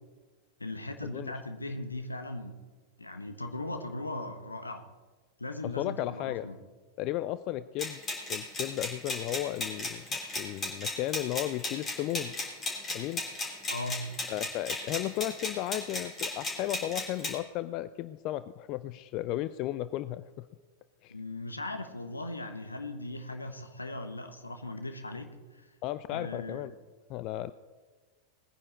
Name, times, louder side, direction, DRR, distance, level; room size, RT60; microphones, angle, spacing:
voice 1, 0.6-2.5 3.0-4.8 5.4-6.6 13.7-14.1 21.1-25.7 26.1-26.6, left 2 dB, 80° left, 6 dB, 1.3 m, -38 dB
voice 2, 5.6-6.5 7.0-8.0 8.3-12.3 12.9-13.2 14.3-20.5 21.0-21.1 25.8-26.7 27.1-27.5, left 14 dB, 40° left, 14 dB, 0.4 m, -34 dB
sound 1, 7.8-17.4, left 2 dB, 25° left, 3.6 m, -36 dB
20.5 x 9.9 x 4.2 m, 1.4 s
figure-of-eight pair, 90°, 0 cm